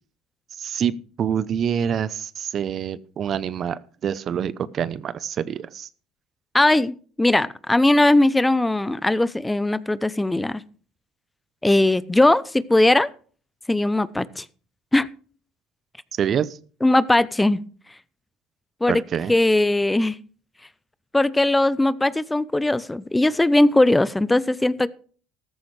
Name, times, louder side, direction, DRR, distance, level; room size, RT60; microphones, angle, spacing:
voice 1, 0.5-5.9 16.1-16.6 18.9-19.3, right 8 dB, 45° right, 18 dB, 0.7 m, -26 dB
voice 2, 6.5-10.6 11.6-13.1 13.7-14.5 14.9-15.1 16.8-17.6 18.8-19.0 19.3-20.2 21.1-24.9, left 2 dB, 10° left, 18 dB, 0.7 m, -19 dB
14.5 x 13.5 x 3.3 m, 0.42 s
hypercardioid pair, 75°, 0 cm